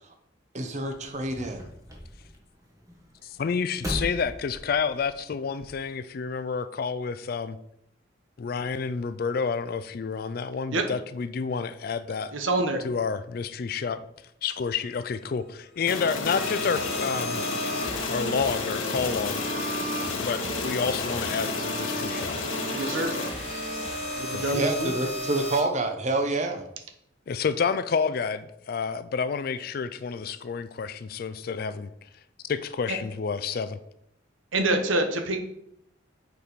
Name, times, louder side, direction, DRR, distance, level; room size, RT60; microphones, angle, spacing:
voice 1, 0.5-1.7 24.5-26.6, right 2 dB, 35° right, 6 dB, 0.8 m, -27 dB
sound 1, 0.8-5.8, equal, 15° right, 1.2 m, -39 dB
voice 2, 3.2-7.6 8.4-12.3 12.8-14.0 14.4-17.4 18.1-19.4 20.2-22.4 24.3-24.6 27.3-31.9 32.4-33.8, left 5 dB, 50° left, 13 dB, 0.3 m, -29 dB
voice 3, 12.3-12.8 22.7-23.2 24.1-24.9 32.9-33.0 34.5-35.4, right 2 dB, 80° right, 6 dB, 1.1 m, -26 dB
sound 2, 15.9-23.3, left 4 dB, 85° left, 0.9 m, -32 dB
sound 3, 16.2-25.6, equal, 30° left, 1.7 m, -34 dB
7.3 x 4.6 x 5.0 m, 0.77 s
head